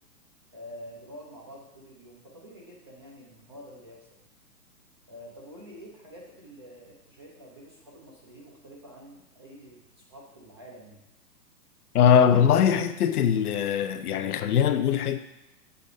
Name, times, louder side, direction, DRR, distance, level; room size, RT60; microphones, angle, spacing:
voice 1, 0.5-4.1 5.1-11.1, equal, 20° right, 0.4 m, -47 dB
voice 2, 11.9-15.2, left 8 dB, 65° left, 0.6 m, -21 dB
6.8 x 3.6 x 5.4 m
hypercardioid pair, 140°, 48 cm